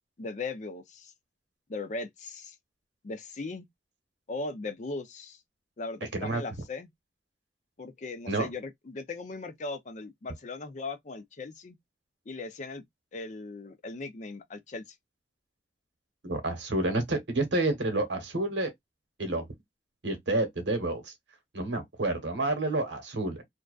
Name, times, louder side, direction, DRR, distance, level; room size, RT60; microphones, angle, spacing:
voice 1, 0.2-1.1 1.7-2.6 3.0-3.7 4.3-5.4 5.8-6.9 7.8-11.8 12.3-12.8 13.1-14.8, left 3 dB, 40° left, 0.5 m, -38 dB
voice 2, 16.2-18.7 19.2-19.5 20.0-21.1 21.5-23.4, right 2 dB, 90° right, 1.0 m, -29 dB
2.5 x 2.2 x 2.3 m
head